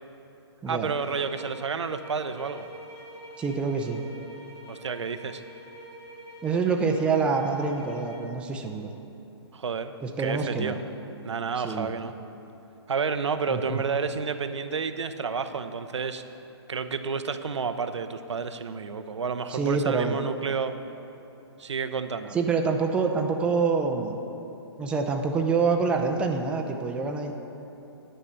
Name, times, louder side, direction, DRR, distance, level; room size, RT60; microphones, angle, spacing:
voice 1, 0.7-2.7 4.7-5.4 9.5-9.9 10.2-10.8 11.2-12.1 12.9-16.2 16.7-20.7 21.6-22.4, right 5 dB, 90° right, 9 dB, 0.7 m, -30 dB
sound 1, 1.0-8.3, right 1 dB, 80° left, 2.7 m, -46 dB
voice 2, 3.4-4.0 6.4-8.9 10.0-10.8 11.6-11.9 13.5-13.8 19.5-20.2 22.3-24.2 24.8-27.3, right 4 dB, 5° right, 2 dB, 0.5 m, -26 dB
10.0 x 5.5 x 8.1 m, 2.9 s
hypercardioid pair, 150°, 14 cm